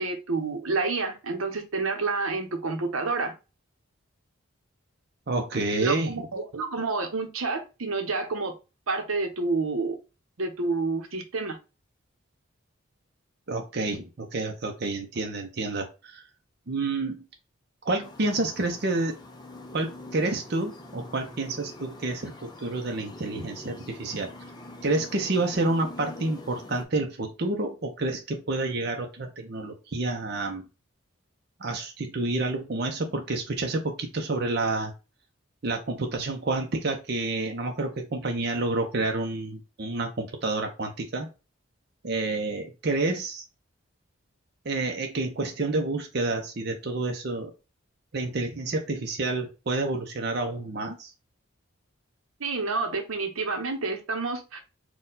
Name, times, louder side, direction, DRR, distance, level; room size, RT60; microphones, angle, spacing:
voice 1, 0.0-3.3 5.8-8.5 8.9-10.0 10.4-11.6 52.4-54.6, right 3 dB, 90° right, 6 dB, 0.9 m, -29 dB
voice 2, 5.3-6.1 13.5-16.2 16.7-17.2 17.8-19.2 19.7-24.3 24.8-30.6 31.6-34.9 35.6-41.3 42.0-43.4 44.6-47.5 48.1-51.1, right 2 dB, 50° right, 3 dB, 0.6 m, -29 dB
sound 1, 18.0-26.8, left 1 dB, 20° left, 0.5 m, -44 dB
4.3 x 2.3 x 3.8 m, 0.29 s
head